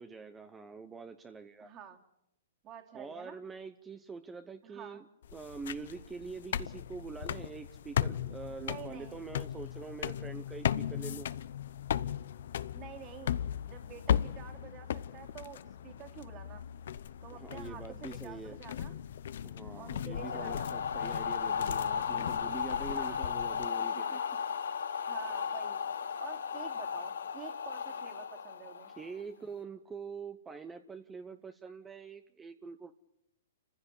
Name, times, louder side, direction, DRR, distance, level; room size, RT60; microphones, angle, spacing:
voice 1, 0.0-1.7 2.9-5.1 5.3-11.3 17.3-18.6 19.4-24.2 28.9-32.9, right 5 dB, 15° right, 9 dB, 1.0 m, -45 dB
voice 2, 1.6-2.0 2.6-3.4 4.6-5.0 8.6-9.2 12.7-13.4 13.7-16.6 17.2-19.0 19.8-20.7 22.7-23.2 23.9-24.2 25.1-25.8 26.2-28.9, right 9 dB, 30° right, 4 dB, 2.9 m, -49 dB
sound 1, 5.2-23.7, left 9 dB, 65° left, 0.8 m, -37 dB
sound 2, 20.1-29.2, left 7 dB, 85° left, 2.7 m, -35 dB
28.5 x 15.5 x 8.4 m, 0.83 s
hypercardioid pair, 140°, 0 cm